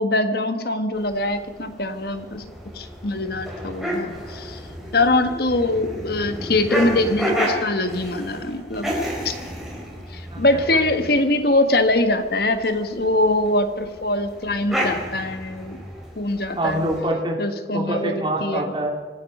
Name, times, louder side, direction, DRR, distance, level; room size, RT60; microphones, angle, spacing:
voice 1, 0.0-4.6 4.9-8.9 9.2-9.3 10.1-15.8 16.2-16.8 17.4-18.1 18.4-18.7, left 2 dB, 55° left, 8 dB, 1.5 m, -23 dB
sound 1, 0.9-17.0, equal, ahead, 3.8 m, -32 dB
voice 2, 16.6-17.4 17.7-19.0, right 1 dB, 25° right, 0 dB, 3.0 m, -25 dB
25.5 x 9.9 x 5.4 m, 1.4 s
head